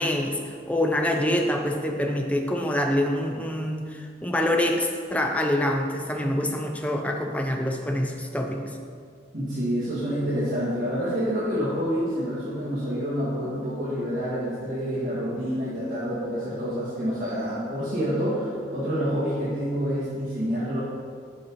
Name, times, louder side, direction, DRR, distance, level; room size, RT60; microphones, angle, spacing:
voice 1, 0.0-8.7, left 1 dB, 10° left, 3 dB, 0.5 m, -26 dB
voice 2, 9.3-20.8, equal, 50° right, -13 dB, 2.1 m, -28 dB
7.5 x 5.7 x 4.7 m, 2.2 s
head